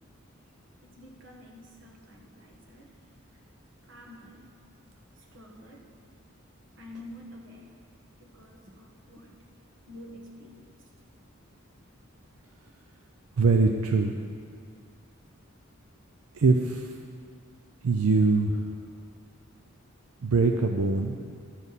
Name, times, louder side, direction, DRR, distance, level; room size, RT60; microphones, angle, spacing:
voice 1, 0.8-3.0 3.3-3.4 3.8-4.5 5.2-5.9 6.8-7.7 8.2-9.3 9.9-10.8, left 1 dB, 60° right, 1 dB, 1.4 m, -48 dB
voice 2, 13.4-14.1 16.4-16.9 17.8-18.5 20.2-21.2, right 3 dB, 90° right, 4 dB, 0.5 m, -22 dB
13.0 x 7.1 x 4.1 m, 2.1 s
head